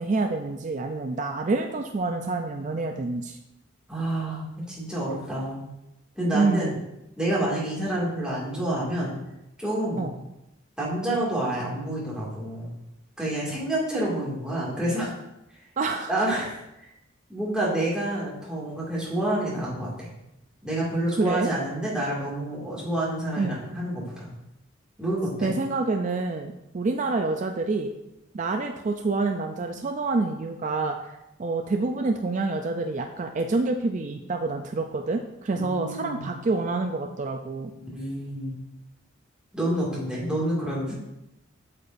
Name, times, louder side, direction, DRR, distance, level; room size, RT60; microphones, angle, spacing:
voice 1, 0.0-3.4 6.3-6.8 10.0-10.1 15.8-16.1 21.1-21.5 23.4-23.6 25.4-27.9 28.3-31.0 31.4-37.7, right 3 dB, 35° right, 4 dB, 0.4 m, -27 dB
voice 2, 3.9-5.6 6.2-6.7 7.2-9.2 9.6-10.1 10.8-12.7 13.2-15.1 16.1-16.6 17.3-20.1 20.6-24.3 25.0-25.5 35.6-36.4 37.7-38.5 39.5-40.9, right 1 dB, 5° right, -7 dB, 2.2 m, -28 dB
8.4 x 6.7 x 2.6 m, 0.89 s
head